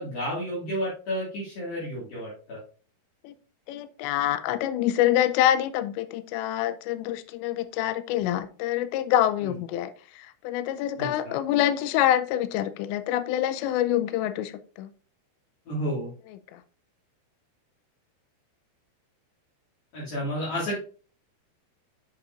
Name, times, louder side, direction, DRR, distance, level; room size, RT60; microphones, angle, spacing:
voice 1, 0.0-2.6 11.0-11.3 15.7-16.1 19.9-20.8, equal, 55° left, -6 dB, 3.5 m, -31 dB
voice 2, 3.7-14.9 16.3-16.6, left 12 dB, 85° left, 12 dB, 2.6 m, -26 dB
8.2 x 7.1 x 2.5 m, 0.39 s
omnidirectional pair, 5.6 m